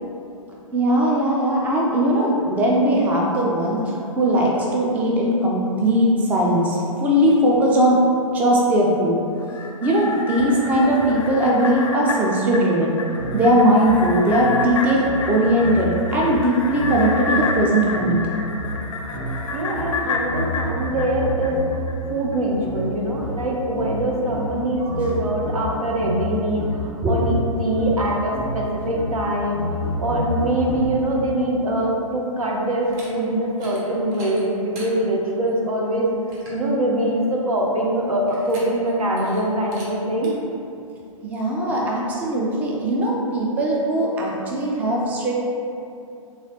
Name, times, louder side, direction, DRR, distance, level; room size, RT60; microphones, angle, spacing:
voice 1, 0.7-8.0 8.3-9.1 9.8-13.0 13.3-18.2 27.0-27.5 41.2-45.3, right 1 dB, 10° right, -3 dB, 0.3 m, -19 dB
sound 1, 9.4-21.9 22.3-22.4, left 4 dB, 65° left, 0.4 m, -30 dB
sound 2, 13.2-21.9 22.6-31.2, left 1 dB, 65° right, 1.4 m, -30 dB
voice 2, 19.5-21.8 22.1-36.1 36.5-40.3, right 1 dB, 85° right, -2 dB, 0.7 m, -23 dB
sound 3, 32.8-33.1 33.5-33.8 34.1-34.9 35.5-35.6 35.9-36.0 36.3-36.6 38.3-38.9 39.2-39.4 39.7-39.9 40.2-40.3, right 2 dB, 40° right, 0.9 m, -42 dB
3.2 x 3.1 x 2.8 m, 2.6 s
figure-of-eight pair, 120°, 18 cm